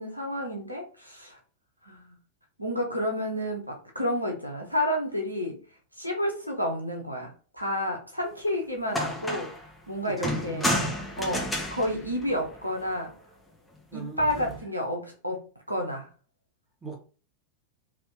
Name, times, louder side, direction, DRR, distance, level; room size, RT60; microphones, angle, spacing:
voice 1, 0.0-1.4 1.8-2.2 2.6-5.6 6.0-9.5 9.9-10.7 11.2-11.4 11.7-13.1 13.9-16.1, equal, 85° right, 0.9 m, -30 dB
sound 1, 8.5-8.6 8.9-9.7 10.2-12.9 14.2-14.6, left 1 dB, 5° left, 0.9 m, -31 dB
voice 2, 10.0-11.0 13.9-14.5 16.8-17.0, right 5 dB, 10° right, 1.4 m, -40 dB
3.7 x 2.7 x 3.6 m
figure-of-eight pair, 90°, 0 cm